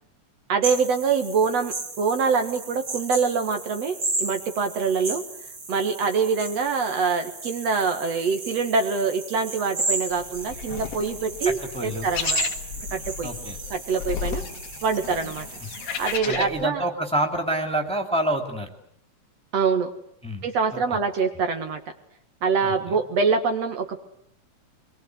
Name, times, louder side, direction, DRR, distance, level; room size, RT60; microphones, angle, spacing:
voice 1, 0.5-5.2 5.7-12.4 12.9-13.3 13.7-14.4 14.8-15.5 16.0-16.8 19.5-19.9 20.4-21.8 22.4-24.0, right 5 dB, 60° right, 6 dB, 2.8 m, -24 dB
sound 1, 0.6-16.2, right 3 dB, 40° right, 3.7 m, -34 dB
sound 2, 10.1-16.6, left 8 dB, 60° left, 2.3 m, -34 dB
voice 2, 11.4-12.1 13.2-13.6 16.3-18.7 20.2-20.8 22.6-23.0, right 1 dB, ahead, 3 dB, 2.5 m, -28 dB
25.0 x 22.5 x 9.5 m, 0.69 s
omnidirectional pair, 3.4 m